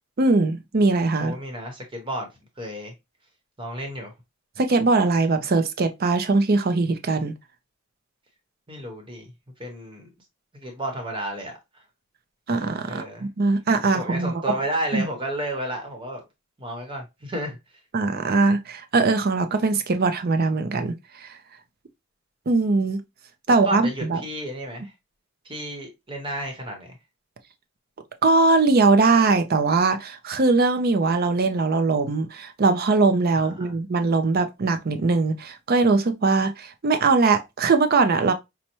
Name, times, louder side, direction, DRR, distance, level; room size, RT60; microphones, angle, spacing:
voice 1, 0.2-1.4 4.6-7.3 12.5-14.4 14.9-15.1 17.9-21.3 22.5-23.0 23.5-24.2 28.2-38.3, right 3 dB, 45° right, 0.5 m, -21 dB
voice 2, 1.2-2.3 2.6-2.9 3.6-4.1 8.7-9.3 9.6-10.1 10.5-11.5 12.8-13.3 13.8-16.2 16.6-17.6 23.5-24.9 25.4-27.0 33.4-33.7, right 1 dB, 20° right, 1.0 m, -32 dB
5.3 x 2.1 x 2.9 m
head